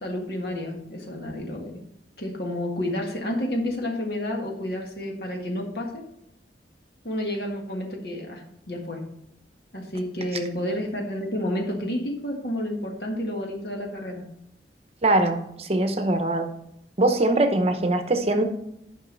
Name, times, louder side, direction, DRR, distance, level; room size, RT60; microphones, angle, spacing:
voice 1, 0.0-1.8 2.2-6.0 7.0-9.0 9.7-14.3, left 1 dB, 60° left, 1 dB, 1.8 m, -30 dB
voice 2, 15.0-16.5 17.0-18.4, right 2 dB, 35° right, 7 dB, 0.9 m, -22 dB
11.0 x 5.5 x 4.0 m, 0.79 s
head